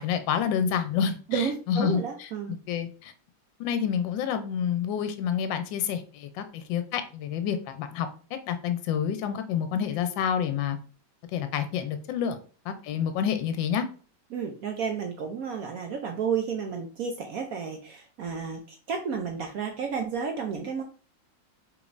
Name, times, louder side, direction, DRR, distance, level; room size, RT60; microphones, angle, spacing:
voice 1, 0.0-2.3 2.7-3.1 3.6-8.1 8.5-10.8 11.3-12.4 12.7-13.9, left 8 dB, 80° left, 1.3 m, -28 dB
voice 2, 1.3-2.6 14.3-20.8, right 6 dB, 75° right, 0.8 m, -31 dB
5.0 x 3.4 x 2.5 m
omnidirectional pair, 2.1 m